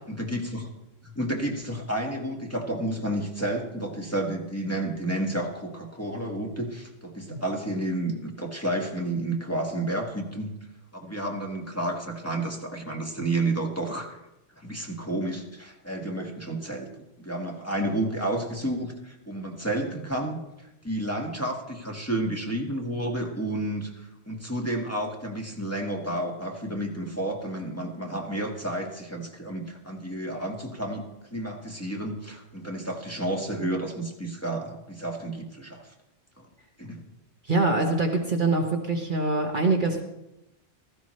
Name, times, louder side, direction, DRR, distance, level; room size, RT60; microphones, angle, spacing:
voice 1, 0.1-0.7 1.0-10.5 10.9-14.2 14.6-16.9 17.2-31.0 31.3-35.9 36.4-36.5 36.8-37.0, right 1 dB, 10° left, -1 dB, 1.6 m, -31 dB
voice 2, 37.5-40.0, right 3 dB, 45° right, 2 dB, 1.3 m, -24 dB
16.0 x 14.5 x 3.2 m, 0.92 s
omnidirectional pair, 1.3 m